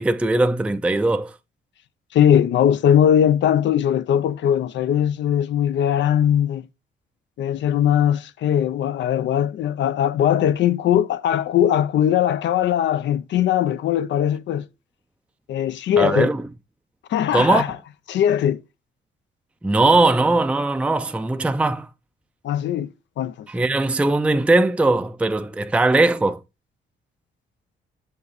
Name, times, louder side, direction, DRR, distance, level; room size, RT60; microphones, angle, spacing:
voice 1, 0.0-1.3 16.0-16.4 17.3-17.6 19.6-21.9 23.5-26.4, right 2 dB, 5° right, 0.4 m, -19 dB
voice 2, 2.1-6.6 7.4-14.7 15.5-16.3 17.1-17.8 18.1-18.6 22.4-22.9 23.2-23.5, left 10 dB, 70° left, 0.5 m, -20 dB
6.5 x 5.6 x 3.9 m
cardioid pair, 90°, 20 cm